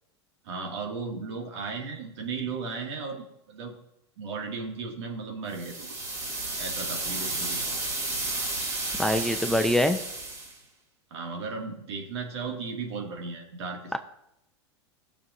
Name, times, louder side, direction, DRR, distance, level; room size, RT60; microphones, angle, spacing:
voice 1, 0.4-3.7 4.2-6.0 6.6-7.6 11.1-14.0, right 4 dB, 70° right, 1 dB, 2.4 m, -35 dB
sound 1, 5.5-10.6, right 2 dB, 25° right, 2.6 m, -32 dB
voice 2, 9.0-10.0 13.9-14.0, left 1 dB, 5° left, 7 dB, 0.6 m, -24 dB
18.0 x 6.9 x 2.7 m, 0.81 s
hypercardioid pair, 100°, 15 cm